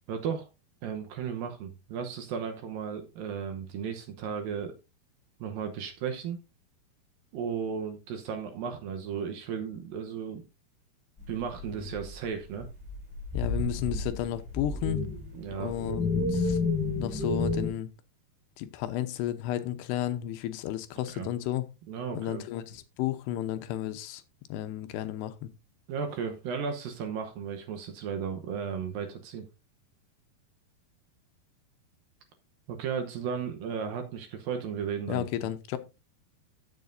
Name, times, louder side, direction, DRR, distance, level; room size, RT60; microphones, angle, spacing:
voice 1, 0.1-0.5 0.8-4.7 5.4-6.4 7.3-10.4 11.3-12.7 15.3-15.8 21.1-21.3 21.9-22.4 25.9-29.5 32.7-35.3, right 7 dB, 70° right, 2.3 m, -35 dB
sound 1, 11.2-12.3 12.6-17.7, left 3 dB, 5° left, 4.1 m, -31 dB
voice 2, 13.3-15.0 15.6-16.6 17.0-17.9 18.6-21.7 22.1-24.2 24.5-25.5 35.1-35.8, left 12 dB, 85° left, 2.8 m, -33 dB
15.0 x 7.2 x 2.6 m
omnidirectional pair, 4.9 m